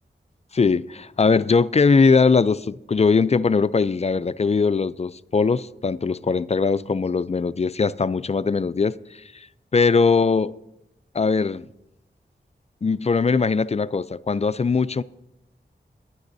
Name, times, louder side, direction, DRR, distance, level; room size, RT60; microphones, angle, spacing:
voice 1, 0.5-9.2 9.7-10.5 11.1-11.7 12.8-15.0, left 4 dB, 35° left, 0.4 m, -20 dB
20.0 x 11.5 x 2.7 m
wide cardioid pair, 85°, 19 cm